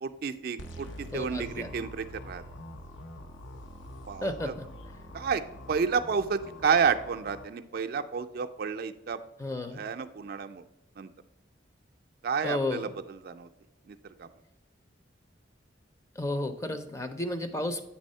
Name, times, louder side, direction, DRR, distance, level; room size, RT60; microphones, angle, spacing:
voice 1, 0.0-2.4 4.1-4.5 5.1-5.4 5.7-9.2 9.7-10.6 11.0-11.1 12.2-13.5 13.9-14.3, right 6 dB, 50° right, 7 dB, 0.4 m, -30 dB
sound 1, 0.6-7.4, equal, 80° left, 0.7 m, -45 dB
voice 2, 1.1-1.7 4.2-4.7 9.4-9.8 12.4-12.9 16.2-17.9, left 1 dB, 15° left, 7 dB, 0.5 m, -32 dB
8.3 x 3.4 x 5.4 m, 0.91 s
head